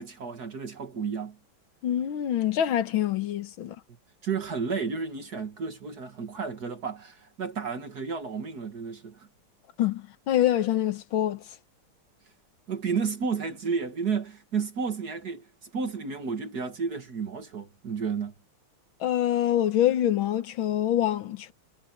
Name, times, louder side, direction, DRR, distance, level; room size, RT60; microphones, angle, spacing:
voice 1, 0.0-1.4 4.2-9.3 12.7-18.3, right 5 dB, 50° right, 2.2 m, -32 dB
voice 2, 1.8-3.7 9.8-11.4 19.0-21.5, left 11 dB, 70° left, 1.8 m, -25 dB
omnidirectional pair, 2.3 m